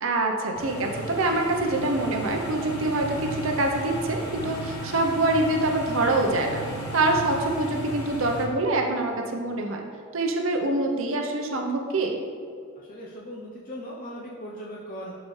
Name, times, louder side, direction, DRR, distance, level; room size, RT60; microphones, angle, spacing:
voice 1, 0.0-6.6 6.9-9.8 10.1-12.2, right 2 dB, 60° right, 2 dB, 0.8 m, -25 dB
sound 1, 0.6-8.4, right 1 dB, 75° left, 2.0 m, -35 dB
voice 2, 12.8-15.2, equal, 40° left, -4 dB, 0.7 m, -39 dB
11.5 x 4.9 x 3.2 m, 2.2 s
head